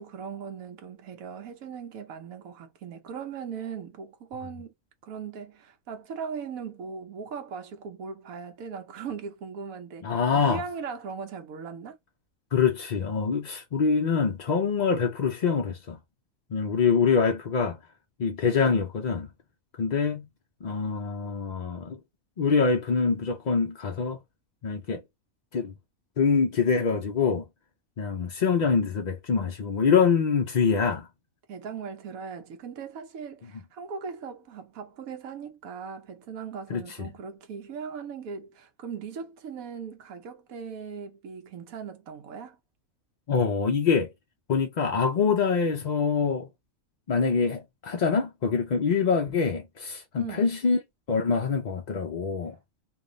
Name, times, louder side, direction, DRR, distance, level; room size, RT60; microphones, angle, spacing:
voice 1, 0.0-4.7 5.0-12.0 31.5-42.6 50.2-50.4, right 6 dB, 80° right, 1.2 m, -39 dB
voice 2, 10.0-10.6 12.5-16.0 16.5-17.8 18.2-19.3 19.8-20.3 20.6-22.0 22.4-24.2 24.6-25.0 25.5-25.7 26.2-27.4 28.0-31.1 36.7-37.1 43.3-44.1 44.5-46.5 47.1-50.8 51.1-52.6, left 5 dB, 55° left, 0.5 m, -25 dB
3.5 x 2.4 x 3.8 m
omnidirectional pair, 1.4 m